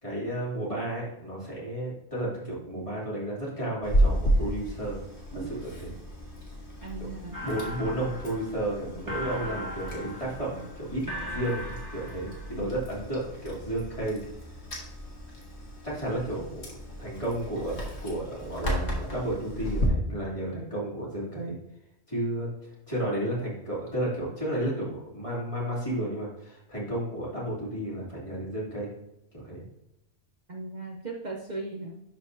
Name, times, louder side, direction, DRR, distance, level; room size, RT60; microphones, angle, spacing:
voice 1, 0.0-5.0 5.3-5.9 7.4-11.0 11.3-14.2 15.8-21.5 22.1-28.9 29.3-29.6, right 1 dB, 30° left, -6 dB, 3.0 m, -32 dB
Chewing mastication, 3.8-19.9, equal, 80° left, 2.0 m, -33 dB
voice 2, 6.8-7.4 12.6-12.7 30.5-32.0, right 3 dB, 45° right, -1 dB, 0.9 m, -37 dB
sound 1, 7.3-12.6, equal, 20° right, 1.7 m, -39 dB
12.0 x 4.4 x 2.7 m, 0.88 s
omnidirectional pair, 1.1 m